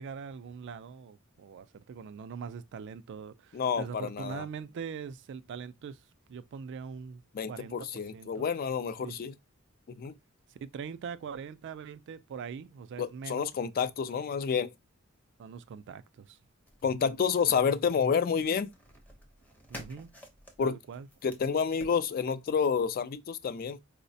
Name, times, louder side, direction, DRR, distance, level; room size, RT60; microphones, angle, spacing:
voice 1, 0.0-6.0 6.3-7.2 7.5-8.5 9.0-9.2 10.5-13.5 15.4-16.4 19.7-20.1 20.6-21.1, right 6 dB, 55° right, 0.3 m, -42 dB
voice 2, 3.5-4.4 7.3-9.3 9.9-10.1 13.0-14.7 16.8-18.7 20.6-20.8 21.2-23.8, left 6 dB, 45° left, 0.3 m, -29 dB
sound 1, 16.7-22.0, equal, 10° left, 0.6 m, -51 dB
4.6 x 2.1 x 2.6 m
head